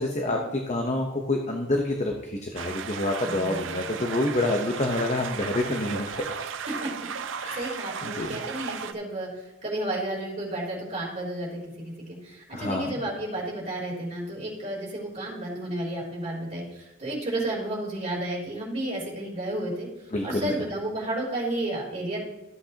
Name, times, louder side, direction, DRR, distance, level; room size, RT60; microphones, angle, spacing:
voice 1, 0.0-6.3 7.4-7.7 8.0-8.4 12.5-13.0 20.1-20.6, left 2 dB, 35° left, 2 dB, 0.9 m, -28 dB
sound 1, 2.6-8.9, right 6 dB, 75° right, 0.6 m, -35 dB
voice 2, 3.2-3.8 6.7-6.9 7.3-9.3 9.6-19.9 20.2-22.2, right 1 dB, 35° right, -5 dB, 3.5 m, -32 dB
14.0 x 8.0 x 2.9 m, 0.98 s
head